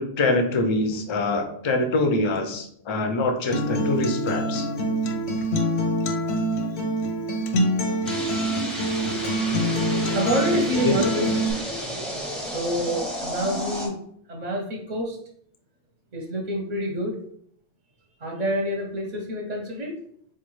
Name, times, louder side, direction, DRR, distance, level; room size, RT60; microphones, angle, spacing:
voice 1, 0.0-4.7 10.8-11.0, left 2 dB, 50° left, 5 dB, 0.3 m, -24 dB
Acoustic guitar, 3.5-11.5, equal, 90° left, 0.8 m, -25 dB
voice 2, 6.5-6.8 10.1-11.3 12.4-14.0 14.3-15.2 16.1-17.2 18.2-20.0, equal, 50° right, 0 dB, 0.6 m, -27 dB
sound 1, 8.0-13.9, equal, ahead, 0.5 m, -32 dB
4.4 x 2.3 x 3.0 m, 0.66 s
omnidirectional pair, 1.1 m